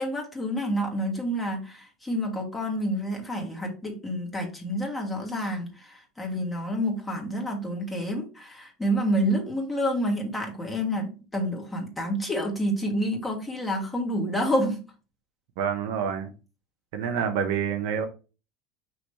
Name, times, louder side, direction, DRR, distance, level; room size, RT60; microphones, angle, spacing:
voice 1, 0.0-14.8, equal, 15° left, 1.5 m, -28 dB
voice 2, 15.6-16.3 16.9-18.1, right 7 dB, 75° right, 0.8 m, -27 dB
5.0 x 3.1 x 3.2 m
supercardioid pair, 105°, 0 cm